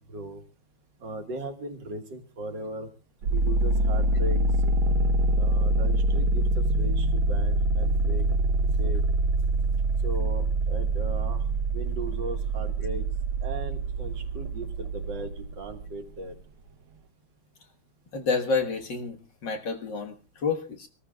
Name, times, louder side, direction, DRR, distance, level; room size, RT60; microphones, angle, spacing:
voice 1, 0.1-0.4 1.0-2.9 3.3-4.7 5.4-8.3 8.8-9.0 10.0-13.1 13.4-16.3, right 2 dB, 55° right, 5 dB, 2.1 m, -38 dB
sound 1, 3.2-15.9, right 2 dB, 70° right, 1.9 m, -25 dB
voice 2, 18.1-20.9, left 4 dB, 55° left, 4 dB, 2.1 m, -29 dB
26.5 x 14.0 x 2.3 m, 0.36 s
omnidirectional pair, 2.4 m